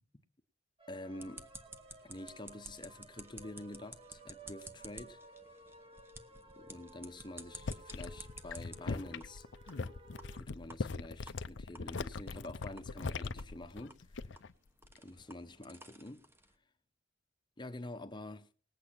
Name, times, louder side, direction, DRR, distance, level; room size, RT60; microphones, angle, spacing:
sound 1, 0.8-10.4, right 2 dB, 30° right, 1.3 m, -57 dB
voice 1, 0.9-1.5 2.0-5.2 6.5-9.4 10.3-14.3 15.0-16.3 17.6-18.5, left 1 dB, 25° left, 0.9 m, -47 dB
sound 2, 1.2-8.8 9.2-9.3 9.7-9.8 10.2-10.3 10.7-10.8 11.3-11.4 11.8-11.9 12.3-12.4 12.8-12.9 13.4-13.5 13.9-16.5, right 2 dB, 10° right, 1.0 m, -53 dB
sound 3, 7.4-14.5 14.8-15.2, left 4 dB, 70° left, 0.7 m, -41 dB
19.0 x 8.6 x 5.9 m
head